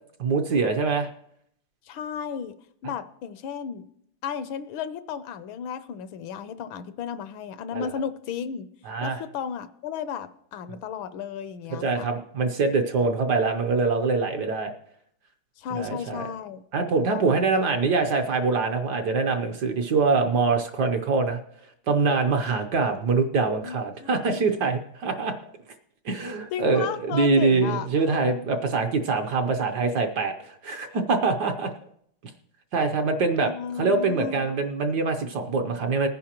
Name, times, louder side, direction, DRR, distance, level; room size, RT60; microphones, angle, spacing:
voice 1, 0.2-1.1 7.7-7.9 8.9-9.2 10.7-10.8 11.8-14.7 15.7-16.3 16.7-21.4 21.9-25.3 26.0-31.7 32.7-33.5 33.8-36.1, right 4 dB, 60° right, 4 dB, 1.2 m, -24 dB
voice 2, 1.9-2.5 2.8-3.9 4.2-8.7 9.0-12.1 15.6-16.6 17.1-17.5 23.4-24.5 26.5-28.5 33.4-34.5, left 7 dB, 75° left, 12 dB, 1.4 m, -34 dB
20.0 x 9.9 x 2.9 m, 0.70 s
omnidirectional pair, 2.3 m